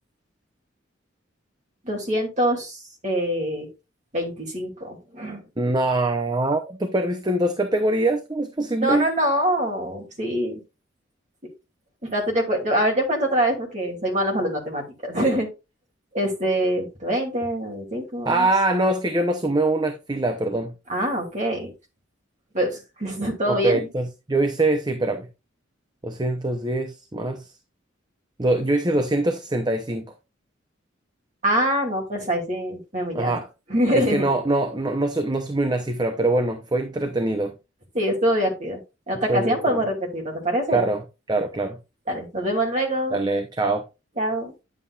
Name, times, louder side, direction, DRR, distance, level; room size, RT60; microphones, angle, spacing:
voice 1, 1.8-3.7 4.1-5.4 8.8-10.6 12.0-15.5 16.1-18.5 20.9-21.7 22.5-23.9 31.4-33.3 33.7-34.3 37.9-38.8 39.1-40.9 42.1-43.2 44.2-44.5, equal, 35° right, 2.8 m, -24 dB
voice 2, 5.6-9.1 18.2-20.7 23.5-25.3 26.0-27.5 28.4-30.0 33.1-33.5 33.9-37.5 39.3-39.6 40.7-41.8 43.1-43.8, right 2 dB, 20° right, 0.7 m, -23 dB
9.8 x 7.3 x 2.4 m
head